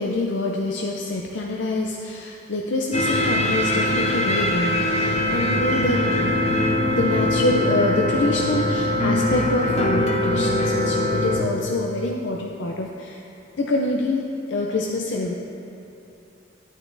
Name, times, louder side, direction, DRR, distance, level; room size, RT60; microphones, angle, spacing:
voice 1, 0.0-6.3 7.0-13.2 13.6-15.3, left 2 dB, 80° left, 0 dB, 0.5 m, -25 dB
sound 1, 2.9-11.4, left 1 dB, 35° left, 0.7 m, -22 dB
11.0 x 8.9 x 2.6 m, 2.8 s
head